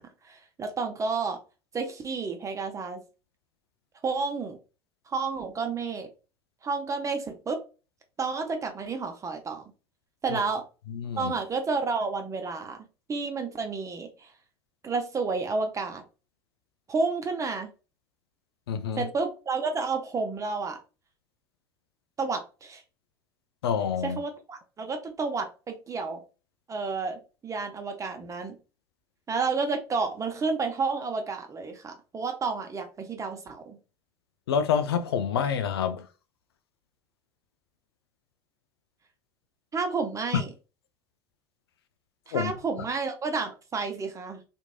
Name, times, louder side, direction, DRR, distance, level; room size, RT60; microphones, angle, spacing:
voice 1, 0.0-1.4 1.7-3.0 4.0-4.6 5.1-6.1 6.6-7.6 8.2-9.6 10.2-10.6 11.2-14.3 14.8-16.0 16.9-17.7 19.0-20.8 22.2-22.8 24.0-26.2 26.7-28.6 29.3-33.8 39.7-40.5 42.3-44.4, right 4 dB, 25° right, 0.7 m, -31 dB
voice 2, 10.9-11.3 18.7-19.1 23.6-24.2 34.5-36.1 40.3-40.4 42.3-42.5, left 7 dB, 75° left, 0.4 m, -27 dB
2.9 x 2.6 x 2.2 m
figure-of-eight pair, 75°, 13 cm